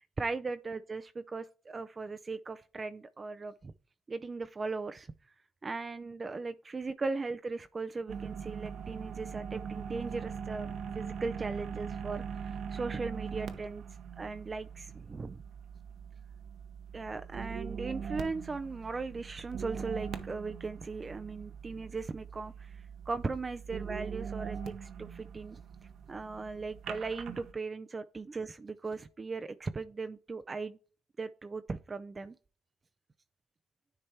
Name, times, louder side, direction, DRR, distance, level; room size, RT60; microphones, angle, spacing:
voice 1, 0.0-3.7 4.1-5.1 5.6-13.8 14.2-15.4 16.9-25.6 26.1-30.8 31.2-32.4, right 4 dB, 30° right, 0.4 m, -38 dB
sound 1, 8.1-27.5, right 7 dB, 75° right, 0.9 m, -42 dB
10.0 x 3.3 x 4.3 m
cardioid pair, 90°, 0 cm